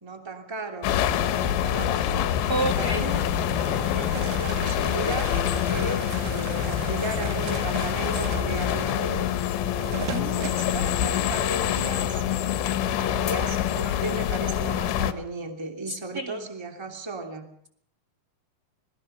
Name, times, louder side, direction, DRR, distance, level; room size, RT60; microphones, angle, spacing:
voice 1, 0.0-2.3 2.6-3.2 3.9-5.4 5.6-9.4 10.2-12.2 12.7-17.5, right 2 dB, 10° right, 4 dB, 1.9 m, -35 dB
sound 1, 0.8-15.1, left 10 dB, 90° left, 3.5 m, -26 dB
sound 2, 2.3-9.6, left 4 dB, 55° left, 1.2 m, -38 dB
voice 2, 2.5-3.0 10.1-10.5 16.1-16.4, right 3 dB, 45° right, 4 dB, 1.3 m, -29 dB
sound 3, 3.1-10.7, right 9 dB, 70° right, 1.9 m, -39 dB
26.5 x 20.5 x 5.7 m, 0.62 s
omnidirectional pair, 5.0 m